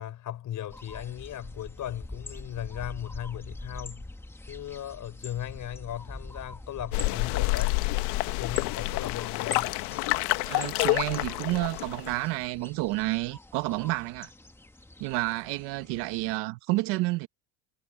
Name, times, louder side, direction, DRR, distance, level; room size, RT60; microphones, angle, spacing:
voice 1, 0.0-4.1 4.5-7.8 8.4-9.8, left 11 dB, 45° left, 4.0 m, -37 dB
sound 1, 0.7-16.4, left 2 dB, 5° left, 1.5 m, -45 dB
sound 2, 6.9-12.2, left 24 dB, 90° left, 1.5 m, -28 dB
voice 2, 10.5-14.3 15.0-17.3, right 20 dB, 65° right, 1.6 m, -30 dB
cardioid pair, 135°, 44 cm